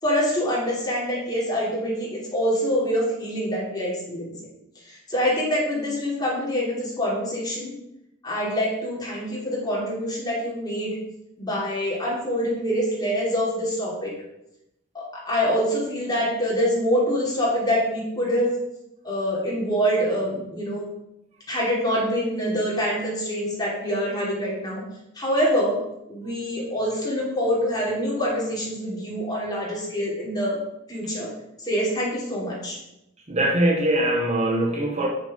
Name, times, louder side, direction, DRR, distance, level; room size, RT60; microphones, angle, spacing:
voice 1, 0.0-4.3 4.7-7.7 8.2-10.9 11.4-14.1 14.9-18.6 19.0-20.9 21.5-24.8 25.1-25.8 26.1-30.6 30.9-31.3 31.6-32.8, equal, 20° left, -5 dB, 3.3 m, -25 dB
voice 2, 33.3-35.1, right 1 dB, 35° right, 1 dB, 1.0 m, -22 dB
7.1 x 6.6 x 5.1 m, 0.85 s
head